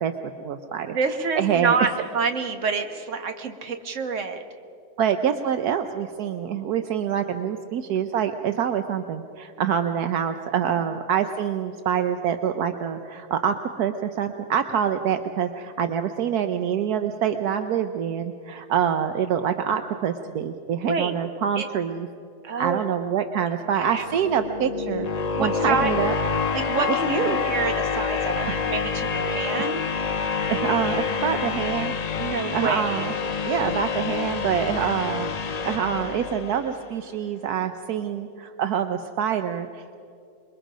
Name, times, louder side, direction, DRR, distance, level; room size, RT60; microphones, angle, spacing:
voice 1, 0.0-1.0 1.3-1.8 5.0-22.1 22.6-25.1 25.4-26.1 27.1-27.4 28.5-28.6 30.5-31.9 32.5-33.1 33.4-40.0, right 8 dB, 75° right, 8 dB, 1.3 m, -26 dB
voice 2, 0.9-4.4 20.8-21.1 21.6-21.7 22.4-22.8 23.7-24.1 25.4-25.9 26.5-29.9 32.2-33.1, right 4 dB, 50° right, 6 dB, 1.6 m, -27 dB
sound 1, 23.9-36.9, left 5 dB, 65° left, 0.4 m, -27 dB
27.0 x 22.0 x 5.1 m, 2.5 s
omnidirectional pair, 1.7 m